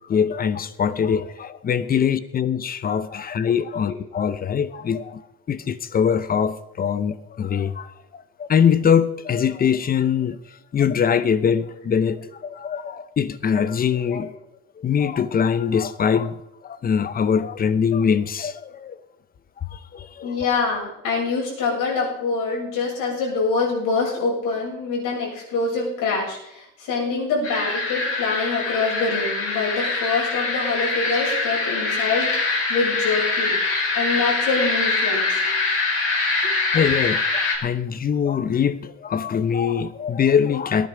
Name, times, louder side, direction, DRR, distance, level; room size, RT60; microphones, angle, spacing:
voice 1, 0.1-5.2 5.5-10.4 10.7-14.4 14.8-16.4 16.6-19.0 19.6-20.4 36.7-40.9, left 7 dB, 25° left, 0.7 m, -22 dB
voice 2, 20.2-32.3 32.7-33.6 34.0-35.5, left 4 dB, 70° left, 7.5 m, -25 dB
sound 1, 27.4-37.6, left 3 dB, 40° left, 5.0 m, -24 dB
18.0 x 11.0 x 5.0 m
cardioid pair, 160°, 33 cm